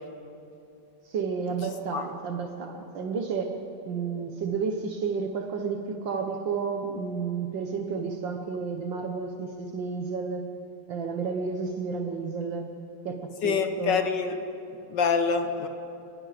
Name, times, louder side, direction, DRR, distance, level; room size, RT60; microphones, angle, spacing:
voice 1, 1.1-3.6 3.9-10.5 10.9-12.7 13.1-14.0, right 5 dB, 65° right, 4 dB, 1.8 m, -31 dB
voice 2, 13.4-14.3 14.9-15.7, left 5 dB, 65° left, 7 dB, 1.7 m, -25 dB
28.5 x 20.5 x 5.0 m, 2.7 s
omnidirectional pair, 2.2 m